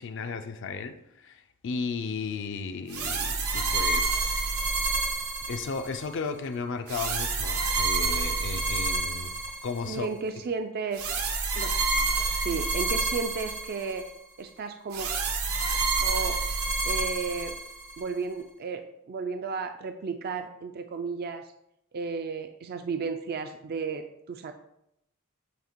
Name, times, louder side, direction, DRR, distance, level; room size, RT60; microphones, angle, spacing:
voice 1, 0.0-4.4 5.5-9.3 9.6-10.1, left 5 dB, 60° left, 0.5 m, -35 dB
sound 1, 2.9-6.1 6.9-10.0 10.9-14.1 14.9-18.0, right 3 dB, 85° right, 1.0 m, -28 dB
voice 2, 9.9-11.2 11.5-11.7 12.4-14.0 14.4-15.1 16.0-16.4 16.9-17.5 18.0-21.4 21.9-24.5, right 4 dB, 45° right, 0.4 m, -33 dB
7.9 x 2.9 x 4.4 m
head